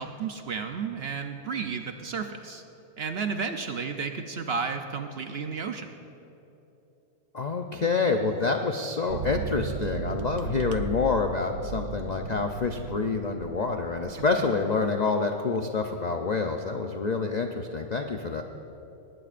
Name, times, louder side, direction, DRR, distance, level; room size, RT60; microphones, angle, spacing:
voice 1, 0.0-2.6 3.0-5.9, right 5 dB, 55° right, 6 dB, 0.7 m, -32 dB
voice 2, 7.3-18.4, left 4 dB, 55° left, 4 dB, 0.4 m, -27 dB
sound 1, 9.1-14.6, right 7 dB, 75° right, 1.0 m, -36 dB
19.5 x 18.5 x 2.5 m, 3.0 s
omnidirectional pair, 1.5 m